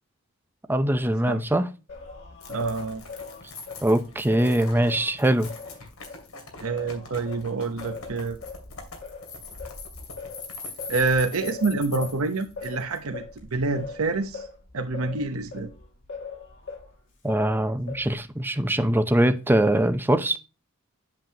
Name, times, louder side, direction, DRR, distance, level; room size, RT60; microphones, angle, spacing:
voice 1, 0.7-1.7 3.8-5.5 17.2-20.4, right 1 dB, 10° right, 0.6 m, -22 dB
Singing, 1.9-6.2 6.7-16.9 17.3-18.3, left 4 dB, 60° left, 2.7 m, -41 dB
sound 1, 2.4-13.0, left 4 dB, 90° left, 2.5 m, -42 dB
voice 2, 2.5-3.0 6.6-8.4 10.9-14.5 14.7-15.7, right 3 dB, 90° right, 0.9 m, -27 dB
7.7 x 7.5 x 2.8 m
head